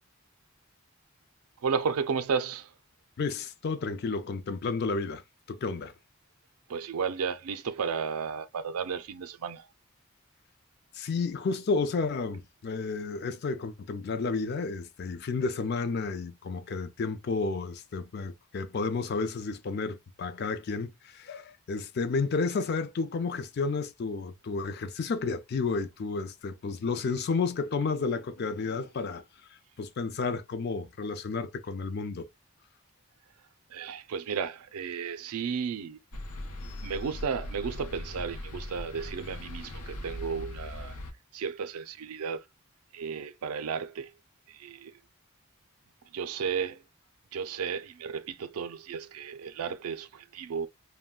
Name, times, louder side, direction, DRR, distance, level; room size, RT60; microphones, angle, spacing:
voice 1, 1.6-2.7 6.7-9.7 33.7-36.0 36.8-41.0 41.3-42.4 42.9-44.1 44.5-45.0 46.1-46.8 47.3-50.7, right 6 dB, 90° right, 0.4 m, -33 dB
voice 2, 3.2-5.2 5.5-5.9 10.9-29.2 29.8-32.3, left 4 dB, 45° left, 0.4 m, -31 dB
sound 1, 36.1-41.1, left 1 dB, 90° left, 0.6 m, -39 dB
2.3 x 2.1 x 3.5 m
head